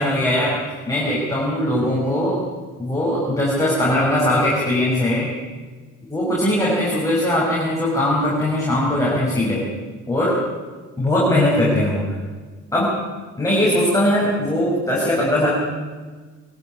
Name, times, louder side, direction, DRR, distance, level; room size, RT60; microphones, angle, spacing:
voice 1, 0.0-2.4 2.8-5.3 6.1-9.6 10.1-10.4 11.0-12.1 12.7-12.9 13.4-15.5, left 1 dB, 10° left, -5 dB, 6.6 m, -20 dB
22.5 x 12.0 x 9.8 m, 1.4 s
cardioid pair, 90°, 30 cm